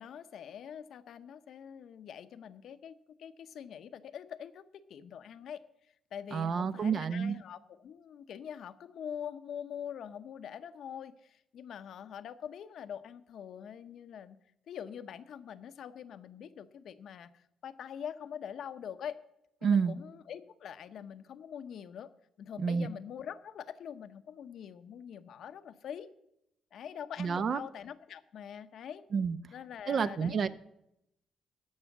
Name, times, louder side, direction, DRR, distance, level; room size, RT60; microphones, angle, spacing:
voice 1, 0.0-5.6 6.1-14.4 14.7-19.2 19.6-22.1 22.4-26.1 26.7-29.0 29.5-30.5, left 8 dB, 70° left, 0.7 m, -44 dB
voice 2, 6.3-7.4 19.6-20.0 22.6-22.9 27.2-27.6 29.1-29.4 29.9-30.5, right 6 dB, 50° right, 0.6 m, -29 dB
13.0 x 5.6 x 7.1 m
cardioid pair, 90°, 0 cm